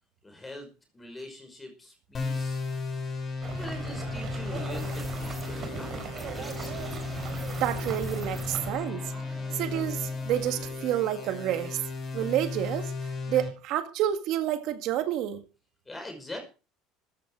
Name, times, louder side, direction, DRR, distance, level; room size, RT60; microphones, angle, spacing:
voice 1, 0.2-0.7 0.9-2.6 3.5-6.9 15.9-16.4, left 1 dB, 15° left, 5.6 m, -43 dB
sound 1, 2.1-13.5, left 4 dB, 30° left, 5.7 m, -35 dB
sound 2, 3.4-8.7, right 6 dB, 40° right, 4.2 m, -39 dB
sound 3, 4.7-10.9, right 2 dB, 10° right, 2.5 m, -46 dB
voice 2, 7.6-9.3 9.5-11.8 12.1-15.4, right 12 dB, 60° right, 1.8 m, -29 dB
15.0 x 10.5 x 4.8 m
cardioid pair, 140°, 0 cm